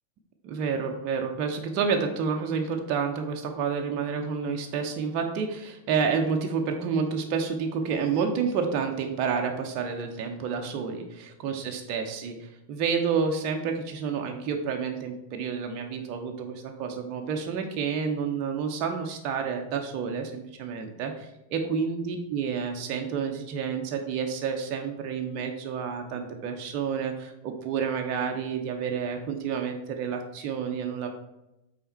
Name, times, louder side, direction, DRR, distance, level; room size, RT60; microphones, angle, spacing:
voice 1, 0.4-31.1, right 6 dB, 40° right, 3 dB, 0.7 m, -29 dB
5.6 x 4.2 x 4.3 m, 0.90 s
figure-of-eight pair, 90°, 0 cm